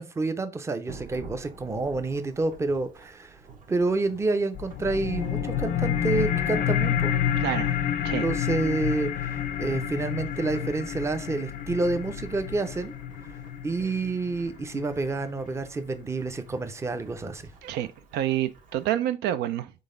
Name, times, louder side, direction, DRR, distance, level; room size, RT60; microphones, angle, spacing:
voice 1, 0.0-3.4 3.7-7.1 8.2-12.9 13.6-17.5, right 3 dB, 15° right, 0.5 m, -29 dB
Thunderstorm / Rain, 0.9-18.9, right 3 dB, 50° right, 1.0 m, -50 dB
sound 1, 4.5-15.5, left 9 dB, 55° left, 0.5 m, -29 dB
voice 2, 7.4-7.7 8.0-8.2 17.6-17.9 18.1-19.7, right 12 dB, 80° right, 0.4 m, -27 dB
3.9 x 3.5 x 3.8 m
cardioid pair, 110°, 17 cm